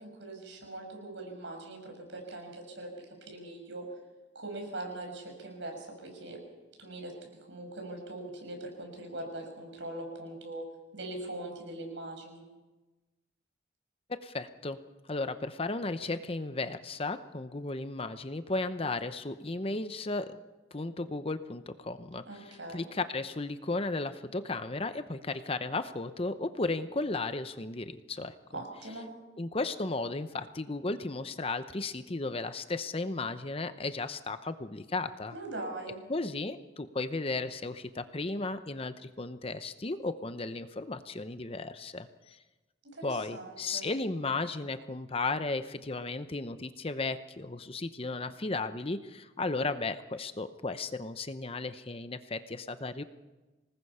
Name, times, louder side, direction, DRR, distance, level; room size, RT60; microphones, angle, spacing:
voice 1, 0.0-3.8 4.3-6.4 6.8-7.1 7.5-10.6 10.9-12.4 22.3-22.8 28.5-29.1 35.3-36.0 42.8-43.9, right 2 dB, 75° right, 3 dB, 6.2 m, -41 dB
voice 2, 14.1-14.8 15.1-20.4 20.7-28.3 29.4-35.3 36.1-42.4 43.0-53.0, left 3 dB, 30° left, 11 dB, 0.8 m, -35 dB
26.0 x 19.5 x 5.6 m, 1.1 s
head